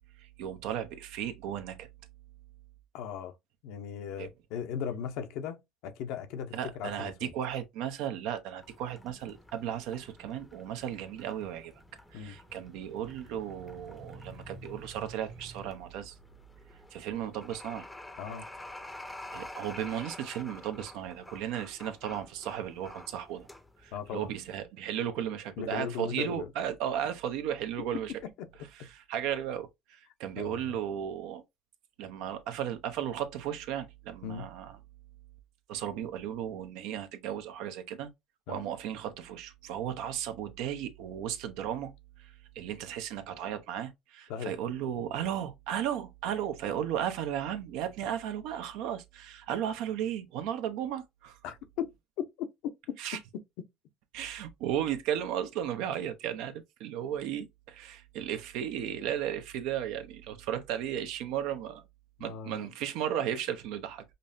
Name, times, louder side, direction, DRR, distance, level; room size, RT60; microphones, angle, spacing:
voice 1, 0.2-1.9 4.2-4.3 6.5-11.7 12.1-16.1 16.9-17.9 19.3-23.5 23.8-28.1 28.8-31.4 32.0-34.8 35.7-38.1 38.5-41.9 42.2-51.4 53.0-53.2 54.1-56.5 56.8-61.8 62.2-64.0, right 10 dB, 75° right, 0.7 m, -35 dB
voice 2, 2.9-3.3 3.6-7.3 12.1-12.4 18.2-18.5 23.9-24.3 25.6-26.5 30.4-30.8 34.2-34.5 38.5-38.6 44.3-44.5 51.4-51.9 52.2-52.7 62.2-62.7, left 8 dB, 75° left, 0.7 m, -37 dB
sound 1, 8.6-24.6, left 2 dB, 10° left, 0.6 m, -50 dB
sound 2, 8.9-15.7, right 1 dB, 50° right, 1.7 m, -53 dB
5.3 x 2.1 x 2.6 m
supercardioid pair, 85°, 0 cm